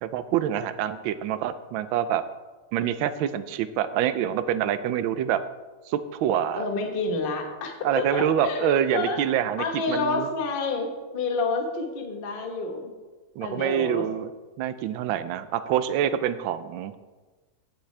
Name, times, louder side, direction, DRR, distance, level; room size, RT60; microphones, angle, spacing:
voice 1, 0.0-2.2 2.7-5.4 5.9-6.6 7.8-10.2 13.4-14.3 14.6-17.0, right 10 dB, 75° right, 12 dB, 1.3 m, -26 dB
voice 2, 6.5-9.2 9.6-12.9 13.4-14.0, left 3 dB, 35° left, 2 dB, 1.1 m, -29 dB
16.0 x 6.1 x 3.3 m, 1.3 s
omnidirectional pair, 2.3 m